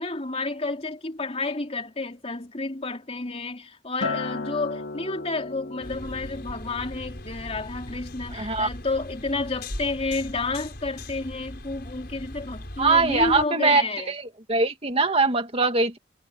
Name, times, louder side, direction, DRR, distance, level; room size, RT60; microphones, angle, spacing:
voice 1, 0.0-14.1, left 3 dB, 35° left, 3.3 m, -30 dB
Acoustic guitar, 4.0-8.4 8.8-9.2, left 3 dB, 80° left, 2.7 m, -36 dB
sound 1, 5.8-13.5, left 1 dB, 60° left, 5.6 m, -39 dB
voice 2, 8.4-8.7 12.8-13.8 14.5-16.0, right 3 dB, 35° right, 2.2 m, -21 dB
head